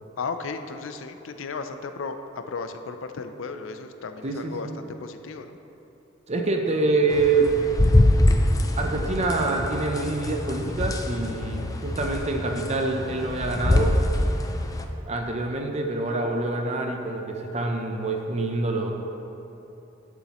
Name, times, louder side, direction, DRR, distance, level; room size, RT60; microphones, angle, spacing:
voice 1, 0.2-5.6, left 4 dB, 85° left, 8 dB, 0.5 m, -35 dB
voice 2, 4.2-4.8 6.3-7.5 8.8-13.9 15.1-18.9, right 3 dB, 35° right, 2 dB, 0.6 m, -26 dB
sound 1, 7.1-14.8, left 1 dB, 20° left, 0.4 m, -24 dB
11.5 x 7.0 x 3.0 m, 3.0 s
head